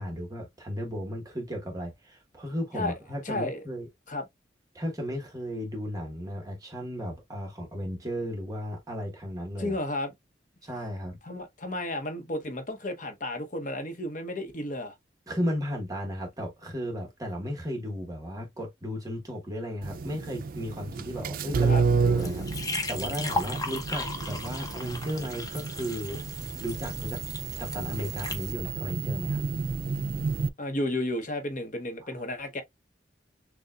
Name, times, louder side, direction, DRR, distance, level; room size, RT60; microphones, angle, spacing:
voice 1, 0.0-3.9 4.7-9.7 10.6-11.2 15.3-26.2 26.6-27.2 27.6-29.4, equal, 20° right, 1.2 m, -35 dB
voice 2, 3.2-3.6 4.1-4.3 9.6-10.1 11.2-14.9 21.7-21.8 30.6-32.6, left 1 dB, 45° left, 0.9 m, -32 dB
sound 1, 19.8-30.5, right 5 dB, 50° right, 0.4 m, -31 dB
sound 2, 22.2-28.5, left 2 dB, 20° left, 0.8 m, -36 dB
6.6 x 2.3 x 2.3 m
head